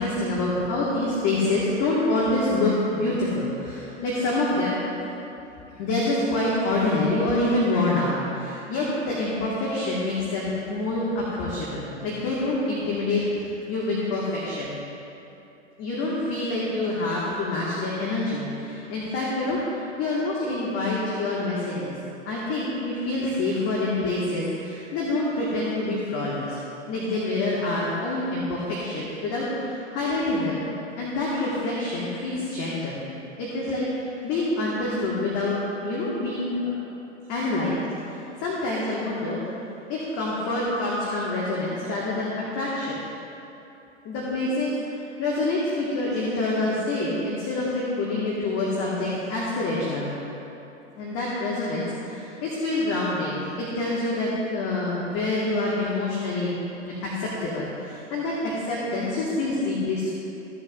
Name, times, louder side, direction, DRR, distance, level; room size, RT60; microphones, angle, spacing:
voice 1, 0.0-4.8 5.8-14.8 15.8-21.9 22.3-26.6 26.9-30.7 31.0-33.0 33.4-35.6 35.8-36.7 37.3-39.4 39.9-43.0 44.0-44.7 45.2-50.1 51.0-56.5 56.8-60.1, left 2 dB, 45° left, -6 dB, 2.0 m, -26 dB
16.0 x 6.8 x 2.7 m, 2.9 s
hypercardioid pair, 95°, 35 cm